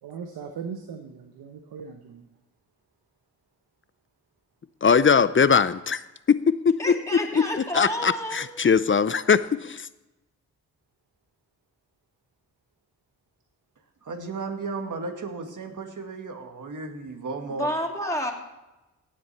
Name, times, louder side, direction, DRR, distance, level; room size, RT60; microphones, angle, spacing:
voice 1, 0.0-2.3, right 6 dB, 85° right, 6 dB, 1.0 m, -39 dB
voice 2, 4.8-9.9, left 6 dB, 35° left, 15 dB, 0.6 m, -21 dB
voice 3, 6.8-8.6 17.6-18.3, equal, 10° left, -1 dB, 3.1 m, -30 dB
voice 4, 14.0-17.7, right 3 dB, 55° right, 5 dB, 2.0 m, -34 dB
17.5 x 7.7 x 4.3 m, 1.0 s
cardioid pair, 50°, 36 cm